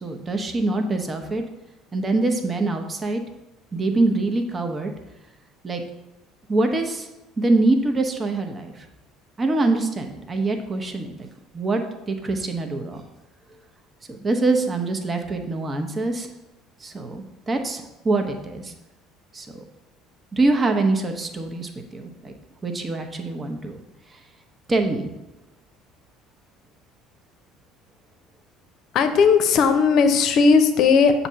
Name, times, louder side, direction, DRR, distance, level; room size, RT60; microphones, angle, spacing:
voice 1, 0.0-1.4 1.9-3.2 3.7-4.9 5.6-5.8 6.5-7.1 7.4-8.9 9.4-11.3 11.5-11.8 12.1-13.0 14.1-16.3 16.8-18.7 19.3-19.5 20.3-22.3 22.6-23.8 24.7-25.1, right 2 dB, 30° right, 4 dB, 0.8 m, -24 dB
voice 2, 28.9-31.3, left 5 dB, 55° left, 8 dB, 0.6 m, -17 dB
7.0 x 2.7 x 5.6 m, 0.99 s
hypercardioid pair, 65°, 0 cm